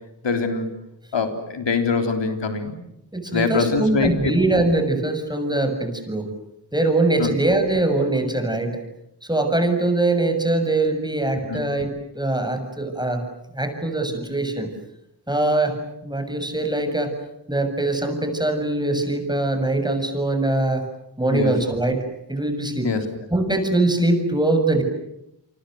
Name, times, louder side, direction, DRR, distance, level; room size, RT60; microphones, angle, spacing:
voice 1, 0.2-0.7 1.1-2.7 3.3-4.3 7.2-7.3 11.5-11.6 21.3-21.5 22.8-23.1, left 4 dB, 90° left, 6 dB, 3.9 m, -23 dB
voice 2, 3.1-6.3 6.7-8.8 9.2-13.2 13.5-14.7 15.3-15.8 16.0-17.1 17.5-20.8 21.2-22.0 22.3-22.9 23.3-24.8, right 2 dB, 10° right, 6 dB, 7.4 m, -22 dB
29.5 x 25.0 x 8.0 m, 0.82 s
cardioid pair, 55°, 42 cm